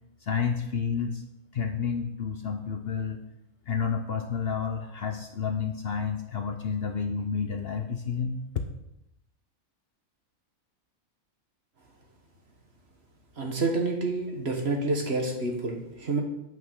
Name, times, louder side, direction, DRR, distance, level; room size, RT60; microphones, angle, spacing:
voice 1, 0.2-1.2 1.5-3.2 3.7-8.4, left 6 dB, 55° left, 5 dB, 0.8 m, -30 dB
voice 2, 13.4-16.2, right 3 dB, 50° right, 1 dB, 1.8 m, -28 dB
9.3 x 5.9 x 6.2 m, 0.86 s
omnidirectional pair, 1.5 m